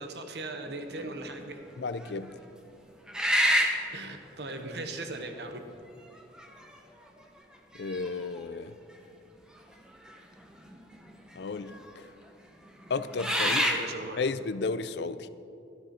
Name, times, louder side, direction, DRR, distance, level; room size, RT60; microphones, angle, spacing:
voice 1, 0.0-1.6 3.9-5.6 13.4-14.2, right 2 dB, 65° right, 6 dB, 1.1 m, -38 dB
sound 1, 1.0-1.4 2.0-2.1 3.1-3.9 5.1-5.2 6.2-6.6 7.1-7.2 7.7-8.4 10.1-10.2 10.5-11.1 11.7-11.9 12.8-13.8, equal, 5° right, 0.9 m, -27 dB
voice 2, 1.8-2.3 7.8-8.7 11.4-12.1 12.9-13.6 14.2-15.3, left 4 dB, 70° left, 13 dB, 0.5 m, -33 dB
13.5 x 12.5 x 4.3 m, 2.6 s
head